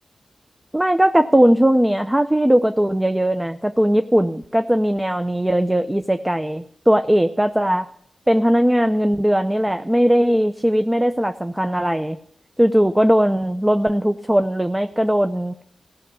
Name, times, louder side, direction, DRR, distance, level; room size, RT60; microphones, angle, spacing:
voice 1, 0.7-7.9 8.3-12.2 12.6-15.5, equal, 15° right, 10 dB, 0.6 m, -18 dB
15.0 x 6.6 x 8.4 m, 0.71 s
cardioid pair, 50°, 0 cm